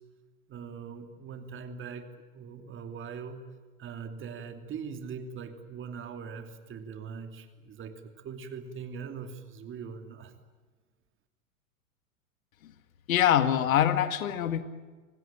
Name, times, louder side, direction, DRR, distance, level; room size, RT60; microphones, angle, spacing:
voice 1, 0.5-3.4 3.8-10.3, right 6 dB, 30° right, 7 dB, 2.9 m, -41 dB
voice 2, 13.1-14.6, left 10 dB, 70° left, 12 dB, 2.0 m, -24 dB
26.5 x 19.5 x 8.9 m, 1.4 s
hypercardioid pair, 100°, 43 cm